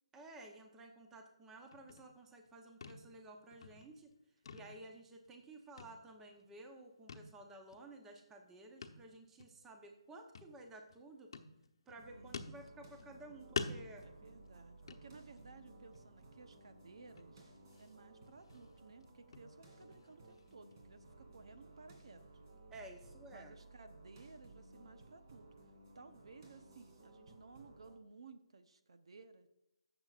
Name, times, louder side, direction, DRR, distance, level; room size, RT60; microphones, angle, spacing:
voice 1, 0.1-4.1 4.5-11.3 11.9-14.0 22.7-23.6, right 2 dB, 10° right, 3 dB, 0.9 m, -54 dB
sound 1, 1.7-2.5 2.8-3.2 3.5-4.1 4.4-5.5 5.8-6.5 7.1-7.4 7.7-7.8 8.8-9.1 9.4-9.5 10.3-11.0 11.3-12.0 12.3-13.2 13.6-15.5 15.9-16.2 16.6-16.7 17.2-17.9 18.2-20.8, left 4 dB, 55° left, 0.9 m, -47 dB
sound 2, 12.0-28.0, right 2 dB, 45° right, 2.8 m, -59 dB
voice 2, 14.0-17.5 17.8-22.2 23.3-25.5 25.9-29.5, right 4 dB, 65° right, 9 dB, 0.9 m, -58 dB
15.5 x 7.2 x 2.5 m, 0.91 s
hypercardioid pair, 160°, 3 cm